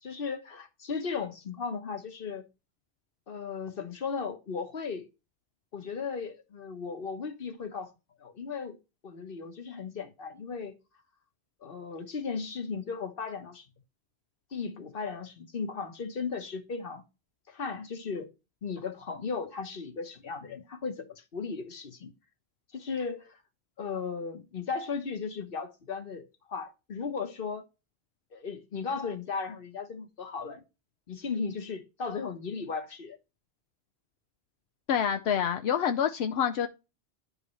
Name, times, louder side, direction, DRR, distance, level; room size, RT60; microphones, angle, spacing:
voice 1, 0.0-2.4 3.3-5.1 5.7-7.9 8.2-8.8 9.0-10.8 11.6-13.7 14.5-17.0 17.5-18.3 18.6-22.1 22.7-23.4 23.8-27.6 28.3-30.6 31.1-33.2, left 5 dB, 60° left, 1.3 m, -36 dB
voice 2, 34.9-36.7, left 8 dB, 85° left, 0.9 m, -27 dB
10.5 x 5.4 x 3.1 m
omnidirectional pair, 1.1 m